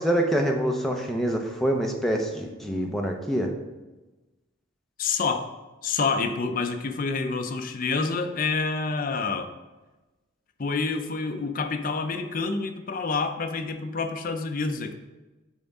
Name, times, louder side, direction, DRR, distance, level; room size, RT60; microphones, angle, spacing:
voice 1, 0.0-3.5, right 1 dB, ahead, 1 dB, 0.7 m, -25 dB
voice 2, 5.0-5.5 5.8-9.5 10.6-14.9, left 4 dB, 40° left, 6 dB, 0.5 m, -28 dB
7.1 x 3.5 x 5.4 m, 1.1 s
head